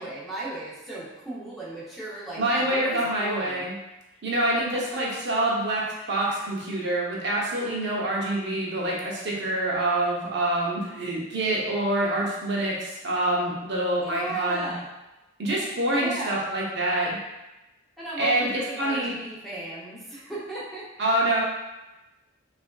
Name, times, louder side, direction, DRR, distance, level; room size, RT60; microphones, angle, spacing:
voice 1, 0.0-3.7 14.0-14.9 15.9-16.5 18.0-20.9, right 2 dB, ahead, -8 dB, 0.6 m, -36 dB
voice 2, 2.4-3.7 4.2-14.7 15.4-17.2 18.2-19.1 21.0-21.4, right 1 dB, 60° right, -4 dB, 0.6 m, -26 dB
3.3 x 2.4 x 2.2 m, 1.0 s
head